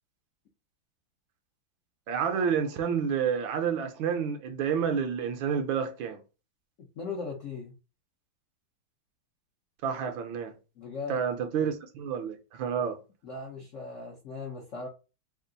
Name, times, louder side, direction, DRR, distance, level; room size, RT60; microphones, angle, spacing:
voice 1, 2.1-6.2 9.8-10.5 11.1-13.0, right 7 dB, 75° right, 1.3 m, -29 dB
voice 2, 7.0-7.7 10.8-11.2 13.2-14.9, left 4 dB, 70° left, 0.7 m, -38 dB
3.5 x 2.4 x 3.8 m
omnidirectional pair, 2.3 m